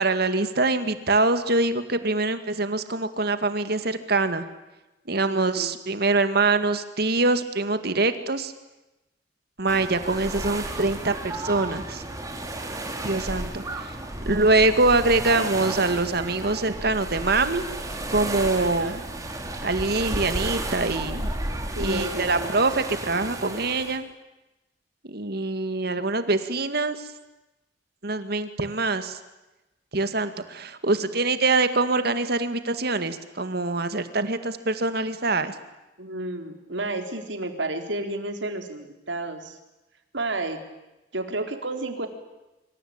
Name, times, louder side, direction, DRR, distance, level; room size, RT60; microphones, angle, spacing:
voice 1, 0.0-4.4 5.1-8.5 9.6-12.0 13.0-14.0 14.3-17.7 18.1-18.9 19.6-21.3 21.8-24.1 25.1-27.1 28.0-29.2 29.9-35.6, right 3 dB, 60° right, 10 dB, 2.2 m, -24 dB
voice 2, 5.3-5.7 18.6-19.0 21.7-22.5 36.0-39.6 40.1-40.6 41.1-42.1, right 2 dB, 80° right, 6 dB, 4.1 m, -31 dB
sound 1, 9.7-24.0, right 1 dB, 20° right, 4.2 m, -33 dB
26.0 x 25.5 x 8.9 m, 0.99 s
head